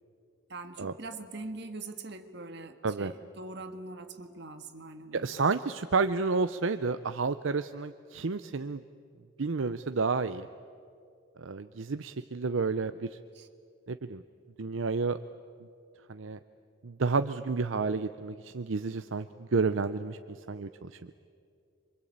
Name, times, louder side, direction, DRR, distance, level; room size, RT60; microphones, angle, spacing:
voice 1, 0.5-5.4 13.3-13.5, right 2 dB, 55° right, 7 dB, 1.8 m, -43 dB
voice 2, 5.1-8.8 9.4-10.5 11.4-13.1 13.9-14.2 14.6-15.2 16.1-16.4 16.8-21.1, right 4 dB, 75° right, 11 dB, 0.7 m, -30 dB
28.0 x 24.5 x 8.7 m, 2.4 s
head